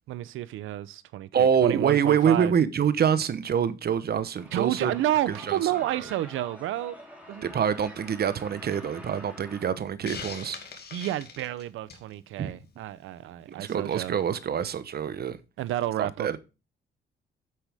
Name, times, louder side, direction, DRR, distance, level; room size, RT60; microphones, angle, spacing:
voice 1, 0.1-2.5 4.5-7.0 7.3-7.5 10.9-14.1 15.6-16.3, right 13 dB, 85° right, 0.8 m, -30 dB
voice 2, 1.3-4.9 5.3-5.6 5.9-6.0 7.4-10.6 12.4-12.5 13.6-15.4 16.0-16.4, right 8 dB, 50° right, 1.0 m, -25 dB
sound 1, 4.4-9.7, equal, 5° right, 4.1 m, -46 dB
Hiss, 10.1-12.1, left 5 dB, 55° left, 2.5 m, -40 dB
9.3 x 8.0 x 3.5 m
cardioid pair, 90°, 20 cm